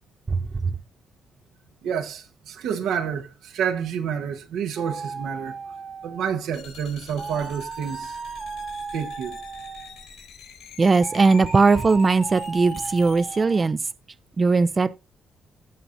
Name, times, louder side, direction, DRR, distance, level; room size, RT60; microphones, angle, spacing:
voice 1, 0.3-0.7 10.8-13.9 14.4-14.9, right 4 dB, 30° right, 0.4 m, -19 dB
voice 2, 1.8-5.5 6.0-8.2 8.9-9.4, right 7 dB, 80° right, 1.3 m, -29 dB
sound 1, 4.8-6.5 7.2-10.1 11.0-13.7, right 5 dB, 45° right, 0.9 m, -36 dB
sound 2, 6.5-13.4, left 7 dB, 85° left, 4.7 m, -45 dB
17.5 x 5.8 x 2.6 m
cardioid pair, 90°, 0 cm